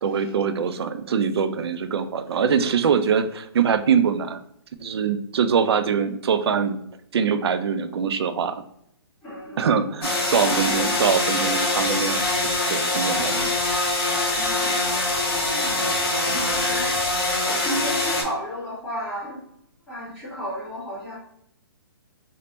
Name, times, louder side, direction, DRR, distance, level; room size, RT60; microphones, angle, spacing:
voice 1, 0.0-4.4 4.8-6.8 7.1-8.6 9.6-12.2 12.7-13.5, right 6 dB, 70° right, 10 dB, 0.4 m, -23 dB
voice 2, 9.2-9.6 14.3-17.0 17.5-19.4 19.9-21.2, equal, 10° left, -13 dB, 1.4 m, -34 dB
sound 1, 10.0-18.2, left 2 dB, 65° left, 1.4 m, -23 dB
3.2 x 2.1 x 2.8 m, 0.73 s
hypercardioid pair, 155°, 14 cm